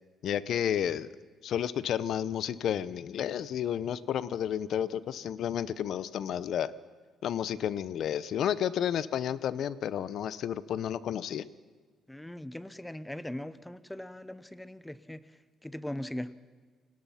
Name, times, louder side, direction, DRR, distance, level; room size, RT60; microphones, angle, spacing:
voice 1, 0.2-1.1 1.4-6.7 7.2-11.4, left 9 dB, 55° left, 17 dB, 0.7 m, -31 dB
voice 2, 12.1-16.4, left 1 dB, 5° left, 15 dB, 0.6 m, -40 dB
29.0 x 18.0 x 5.7 m, 1.5 s
cardioid pair, 175°, 0 cm